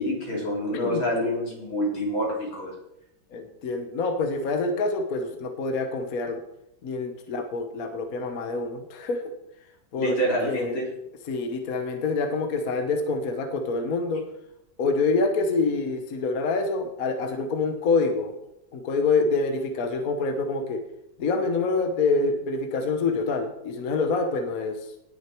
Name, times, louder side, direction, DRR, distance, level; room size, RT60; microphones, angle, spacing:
voice 1, 0.0-2.7 10.0-10.8, equal, 85° left, -3 dB, 4.5 m, -27 dB
voice 2, 3.3-6.4 6.8-9.3 9.9-10.2 10.4-10.8 11.3-14.2 14.8-18.3 18.7-20.8 21.2-24.9, left 3 dB, 50° left, 6 dB, 1.5 m, -26 dB
18.5 x 6.5 x 4.6 m, 0.83 s
omnidirectional pair, 2.1 m